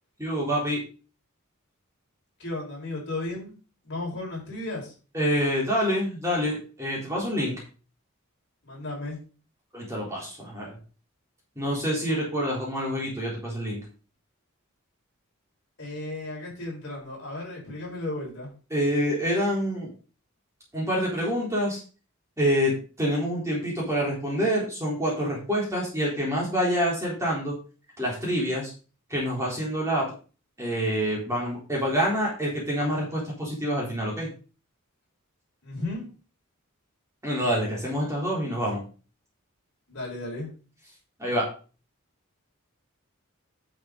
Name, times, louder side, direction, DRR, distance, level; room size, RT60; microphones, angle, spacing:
voice 1, 0.2-0.8 5.1-7.5 9.7-10.8 11.6-13.8 18.7-19.9 20.7-21.8 22.4-27.6 28.0-28.7 29.1-30.1 30.6-34.3 37.2-38.8 41.2-41.5, equal, 15° right, -4 dB, 3.9 m, -27 dB
voice 2, 2.4-3.6 3.8-4.9 8.6-9.2 15.8-18.5 35.6-36.1 39.9-40.5, left 2 dB, 55° left, -3 dB, 5.1 m, -34 dB
10.0 x 7.1 x 4.0 m, 0.36 s
head